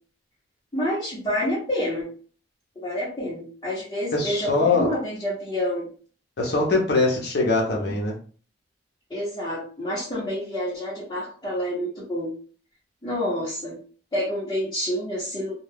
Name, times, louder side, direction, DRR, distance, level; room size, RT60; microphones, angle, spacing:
voice 1, 0.7-2.1 2.8-5.9 9.1-12.3 13.0-13.8 14.1-15.5, equal, 25° left, -8 dB, 0.9 m, -28 dB
voice 2, 4.1-4.9 6.4-8.1, left 3 dB, 60° left, -1 dB, 0.7 m, -22 dB
2.3 x 2.2 x 3.3 m, 0.41 s
head